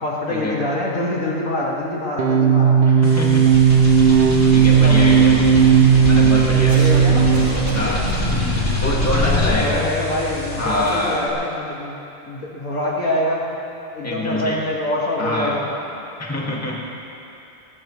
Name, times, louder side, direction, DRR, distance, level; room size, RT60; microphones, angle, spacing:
voice 1, 0.0-2.8 4.8-5.3 6.5-7.3 8.3-8.6 9.3-12.0 12.3-13.5 13.9-15.7, left 1 dB, 65° left, -4 dB, 2.5 m, -25 dB
sound 1, 2.2-7.9, right 7 dB, 60° right, 0.6 m, -14 dB
voice 2, 2.9-3.5 4.5-5.4 6.1-6.8 7.7-8.1 8.8-9.8 10.6-11.2 14.0-14.6 15.2-15.6 16.2-16.8, left 1 dB, 10° left, -4 dB, 1.9 m, -25 dB
sound 2, 3.0-11.3, left 2 dB, 50° left, 3.6 m, -24 dB
Cough, 6.7-7.1 7.3-8.3 9.0-9.7 10.8-11.2, right 2 dB, 85° right, 2.9 m, -33 dB
19.5 x 19.0 x 3.2 m, 2.9 s
omnidirectional pair, 1.5 m